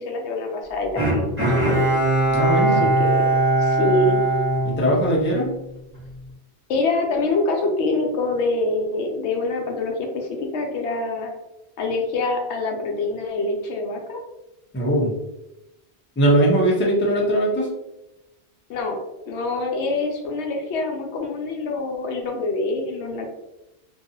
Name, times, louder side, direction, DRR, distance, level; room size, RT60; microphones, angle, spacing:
voice 1, 0.0-1.9 2.7-3.2 3.6-4.2 6.7-11.3 11.8-14.2 18.7-19.0 19.3-23.3, left 3 dB, 85° left, 2 dB, 0.9 m, -25 dB
Bowed string instrument, 1.0-5.5 5.9-6.0, right 2 dB, 10° right, 1.1 m, -20 dB
voice 2, 2.3-2.9 4.6-5.5 14.7-15.1 16.2-17.7, right 1 dB, 15° left, -5 dB, 0.6 m, -20 dB
2.7 x 2.4 x 2.6 m, 0.93 s
omnidirectional pair, 1.1 m